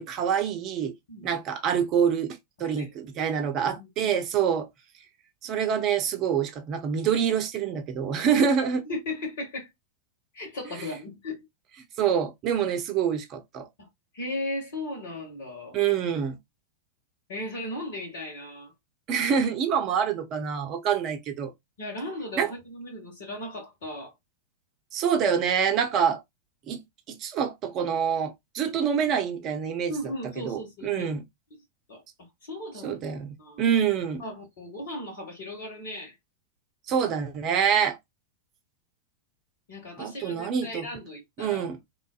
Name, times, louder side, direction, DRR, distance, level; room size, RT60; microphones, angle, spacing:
voice 1, 0.0-0.9 1.2-4.7 5.4-8.8 12.0-13.7 15.7-16.4 19.1-21.5 22.4-22.5 24.9-26.2 26.7-26.8 27.1-29.9 30.4-31.2 32.8-34.2 36.9-38.0 40.0-40.9 41.4-41.8, right 7 dB, 35° right, 0.8 m, -26 dB
voice 2, 2.6-3.3 3.8-4.2 8.9-9.7 10.3-11.5 13.8-13.9 14.1-15.8 17.3-18.7 21.8-24.1 29.9-31.1 31.9-32.0 32.4-32.9 33.4-33.7 34.2-36.1 39.7-41.7, left 1 dB, 55° left, 1.7 m, -36 dB
4.0 x 3.0 x 2.3 m
figure-of-eight pair, 90°, 0 cm